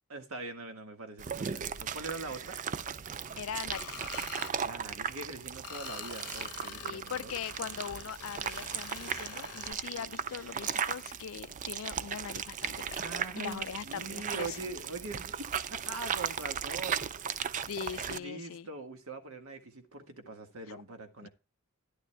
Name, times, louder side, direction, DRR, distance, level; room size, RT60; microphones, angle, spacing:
voice 1, 0.1-2.6 4.6-7.3 12.9-17.3 18.1-21.3, right 3 dB, 70° right, 1.6 m, -43 dB
sound 1, 1.2-18.2, right 7 dB, 35° right, 0.4 m, -37 dB
voice 2, 3.4-3.9 6.7-13.0 13.4-14.6 17.7-18.7 20.7-20.8 21.2-21.3, left 8 dB, 65° left, 0.4 m, -41 dB
Screech, 3.7-4.5 5.6-9.7, left 8 dB, 80° left, 0.9 m, -46 dB
sound 2, 9.6-11.9 13.9-15.9 16.5-16.6, left 3 dB, 45° left, 1.9 m, -61 dB
11.5 x 10.5 x 2.2 m
head